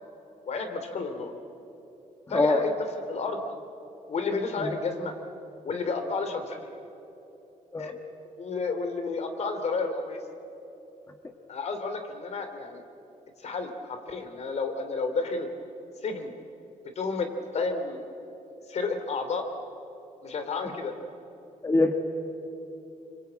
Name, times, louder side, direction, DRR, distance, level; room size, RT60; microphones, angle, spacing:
voice 1, 0.5-1.3 2.3-2.7 3.1-3.4 4.1-5.2 5.6-6.7 7.8-7.9 8.4-10.2 11.5-12.8 13.4-15.5 16.0-16.3 17.0-17.3 17.5-18.0 18.7-19.5 20.2-20.9, left 4 dB, 55° left, 7 dB, 2.8 m, -31 dB
voice 2, 21.6-21.9, left 2 dB, 20° left, 4 dB, 1.6 m, -24 dB
27.0 x 24.5 x 8.9 m, 3.0 s
wide cardioid pair, 150°, 14 cm